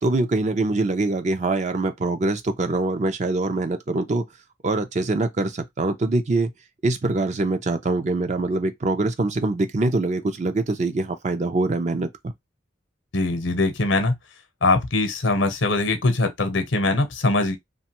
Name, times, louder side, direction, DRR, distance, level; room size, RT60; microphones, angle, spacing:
voice 1, 0.0-4.3 4.6-6.5 6.8-12.1, right 2 dB, 40° right, 0.4 m, -24 dB
voice 2, 13.1-14.2 14.6-17.6, left 2 dB, 80° left, 0.7 m, -22 dB
2.9 x 2.2 x 2.9 m
head